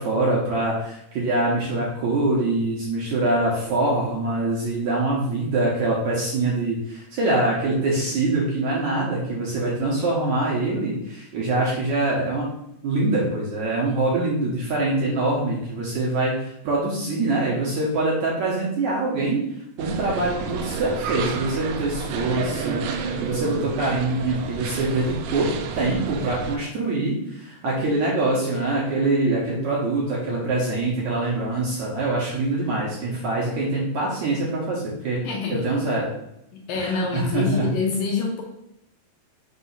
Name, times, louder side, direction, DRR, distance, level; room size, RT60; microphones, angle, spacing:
voice 1, 0.0-12.5 12.8-19.4 19.8-25.5 25.8-35.2 35.5-36.1 36.7-37.7, right 2 dB, 65° right, -4 dB, 2.0 m, -24 dB
sound 1, 19.8-26.6, right 5 dB, 85° right, 1.8 m, -30 dB
voice 2, 35.2-35.7 36.5-38.4, left 4 dB, 75° left, 0 dB, 2.2 m, -26 dB
6.1 x 3.4 x 5.5 m, 0.80 s
omnidirectional pair, 4.6 m